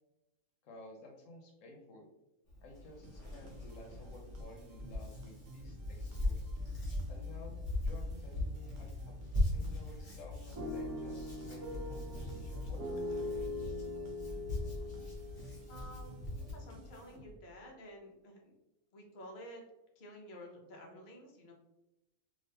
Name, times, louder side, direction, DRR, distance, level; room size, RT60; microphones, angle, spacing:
voice 1, 0.6-2.1 2.6-6.5 7.1-9.1 9.5-12.8, left 1 dB, 70° left, 1 dB, 1.1 m, -54 dB
Hands, 2.5-16.5, left 1 dB, 25° left, 1.1 m, -40 dB
sound 1, 3.0-17.6, right 1 dB, 75° right, 1.1 m, -54 dB
sound 2, 10.6-16.6, left 2 dB, 30° right, 0.4 m, -42 dB
voice 2, 15.7-18.5 18.9-19.6 20.0-21.5, equal, 45° left, 0 dB, 0.7 m, -51 dB
3.5 x 2.8 x 2.8 m, 0.94 s
omnidirectional pair, 1.5 m